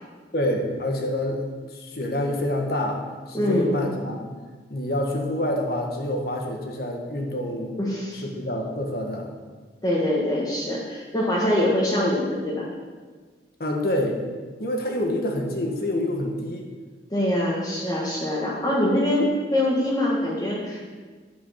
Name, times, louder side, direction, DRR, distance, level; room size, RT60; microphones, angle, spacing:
voice 1, 0.3-1.4 1.7-4.3 4.7-7.8 8.1-9.3 13.6-14.2 14.6-16.6, left 1 dB, 55° left, 1 dB, 1.6 m, -27 dB
voice 2, 3.3-3.7 7.8-8.2 9.8-12.7 17.1-20.8, left 1 dB, 20° left, -4 dB, 1.5 m, -24 dB
10.0 x 7.9 x 5.7 m, 1.4 s
head